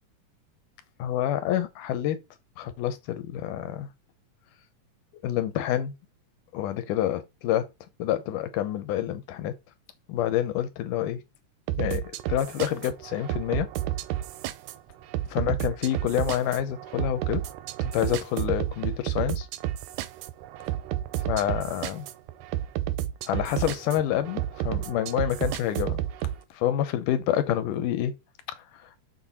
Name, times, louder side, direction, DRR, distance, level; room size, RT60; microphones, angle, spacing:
voice 1, 1.0-2.2 2.6-3.9 5.2-5.9 6.5-7.7 8.0-9.5 10.1-11.2 11.8-12.0 12.3-13.7 15.3-17.4 17.8-19.5 21.3-22.0 23.3-26.0 26.5-28.1 28.5-28.9, left 11 dB, 80° left, 2.3 m, -28 dB
sound 1, 11.7-26.4, right 13 dB, 80° right, 1.8 m, -31 dB
6.7 x 4.1 x 4.2 m
omnidirectional pair, 3.8 m